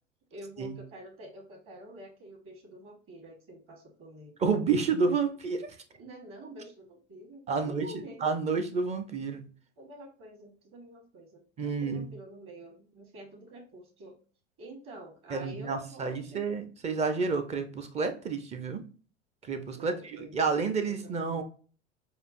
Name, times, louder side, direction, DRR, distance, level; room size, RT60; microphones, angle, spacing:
voice 1, 0.3-4.3 6.0-8.2 9.8-14.1 14.6-16.5 19.8-20.6 21.0-21.4, right 1 dB, 35° right, 3 dB, 1.7 m, -47 dB
voice 2, 4.4-5.8 7.5-7.9 8.2-9.5 11.6-12.1 15.3-18.8 19.4-21.4, right 4 dB, 20° right, 9 dB, 0.6 m, -30 dB
6.7 x 2.4 x 2.5 m, 0.39 s
figure-of-eight pair, 80°, 35 cm